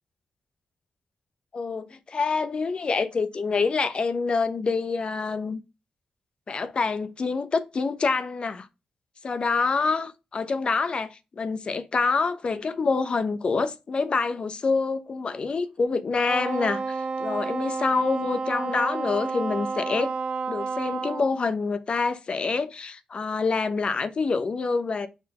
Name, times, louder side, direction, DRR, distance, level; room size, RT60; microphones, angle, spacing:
voice 1, 1.5-5.6 6.5-8.7 9.2-20.1 20.5-25.1, left 4 dB, 50° left, 1.0 m, -26 dB
Wind instrument woodwind instrument, 16.3-21.3, right 4 dB, 55° right, 0.6 m, -30 dB
5.0 x 4.5 x 5.0 m
cardioid pair, 60°, 2 cm